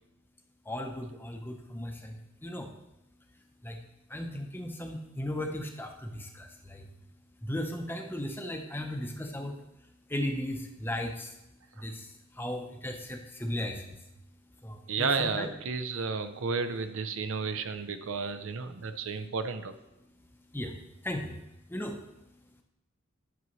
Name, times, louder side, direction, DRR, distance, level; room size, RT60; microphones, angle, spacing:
voice 1, 0.7-2.7 3.6-3.8 4.1-6.8 7.4-9.6 10.1-11.3 11.8-14.0 14.6-15.5 20.5-20.7 21.0-21.4 21.7-22.0, left 1 dB, 10° left, 3 dB, 0.6 m, -36 dB
voice 2, 14.9-19.7, right 4 dB, 70° right, 9 dB, 0.5 m, -32 dB
11.0 x 6.2 x 3.1 m, 0.90 s
head